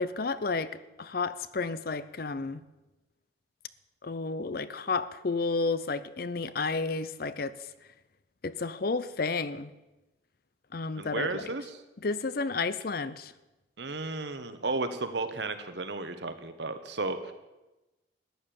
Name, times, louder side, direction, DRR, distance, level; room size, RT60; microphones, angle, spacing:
voice 1, 0.0-2.6 4.0-7.7 8.4-9.7 10.7-11.5 12.0-13.3, left 4 dB, 50° left, 15 dB, 0.6 m, -31 dB
voice 2, 11.0-11.8 13.8-17.3, right 3 dB, 65° right, 9 dB, 1.2 m, -33 dB
13.5 x 9.7 x 6.9 m, 1.0 s
head